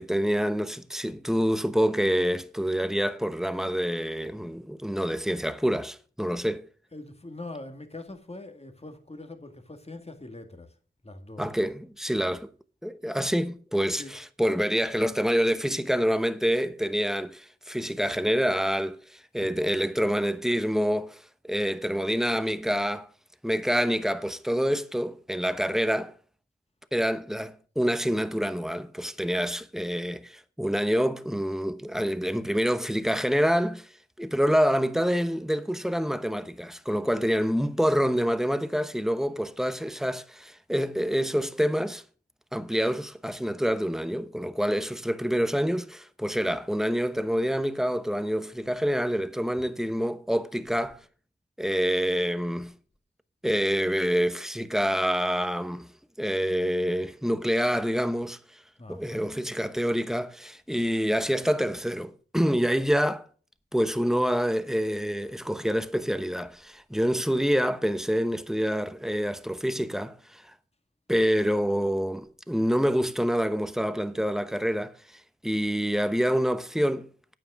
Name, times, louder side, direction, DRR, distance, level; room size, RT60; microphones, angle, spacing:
voice 1, 0.0-6.7 11.4-12.5 12.8-23.1 23.4-26.1 26.9-33.9 34.2-42.0 42.5-51.0 51.6-52.7 53.4-55.9 56.2-58.6 58.9-63.3 63.7-70.5 71.1-77.1, equal, ahead, 0.9 m, -27 dB
voice 2, 6.9-10.7 11.0-11.5 14.0-14.2 19.4-19.6 58.8-59.3, left 2 dB, 30° left, 2.1 m, -42 dB
9.7 x 9.1 x 6.2 m
wide cardioid pair, 70°, 20 cm